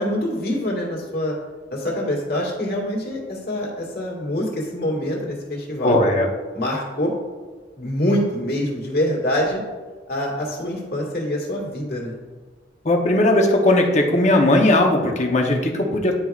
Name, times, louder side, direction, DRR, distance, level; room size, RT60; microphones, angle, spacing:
voice 1, 0.0-1.4 1.7-6.0 6.5-7.1 7.8-9.6 10.1-12.2, left 1 dB, 55° left, -2 dB, 1.7 m, -25 dB
voice 2, 5.8-6.3 12.8-16.2, left 1 dB, 40° left, 2 dB, 0.8 m, -18 dB
10.0 x 4.6 x 2.4 m, 1.4 s
head